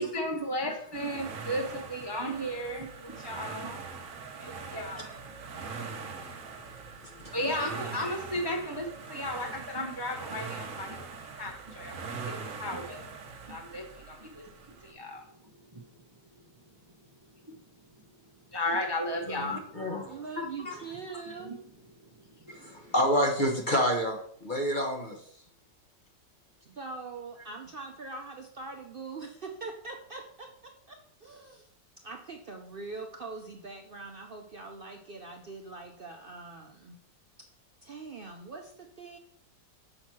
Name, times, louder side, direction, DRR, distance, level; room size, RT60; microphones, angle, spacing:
voice 1, 0.0-3.8 4.4-5.1 7.3-11.0 11.4-11.9 12.6-13.0 13.5-14.4 14.8-15.2 18.5-19.6 21.5-21.6, left 1 dB, 25° right, 2 dB, 0.5 m, -34 dB
sound 1, 0.9-14.9, right 5 dB, 55° right, 1.1 m, -42 dB
voice 2, 19.3-20.1 20.4-20.7 22.6-25.2, equal, 35° left, 2 dB, 1.0 m, -29 dB
voice 3, 20.1-21.6 26.6-31.7 32.0-37.0 37.8-39.2, right 3 dB, 90° right, 2 dB, 0.4 m, -43 dB
6.4 x 4.4 x 6.0 m, 0.64 s
omnidirectional pair, 1.9 m